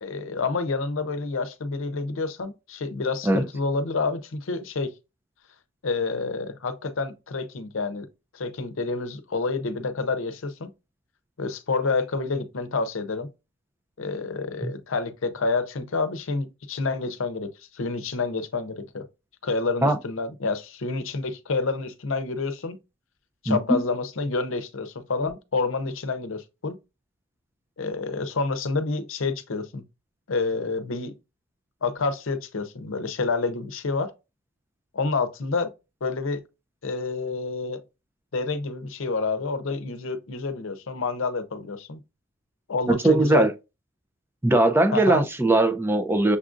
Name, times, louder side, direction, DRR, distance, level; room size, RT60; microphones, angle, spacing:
voice 1, 0.0-4.9 5.8-8.1 8.3-10.7 11.4-13.3 14.0-19.0 19.4-22.8 23.4-26.8 27.8-29.8 30.3-31.1 31.8-34.1 34.9-35.7 36.0-36.4 36.8-37.8 38.3-42.0 42.7-43.5 44.9-45.2, left 4 dB, 80° left, 0.6 m, -28 dB
voice 2, 23.5-23.8 42.9-43.5 44.4-46.4, right 2 dB, 10° right, 0.4 m, -20 dB
6.6 x 2.4 x 2.5 m
head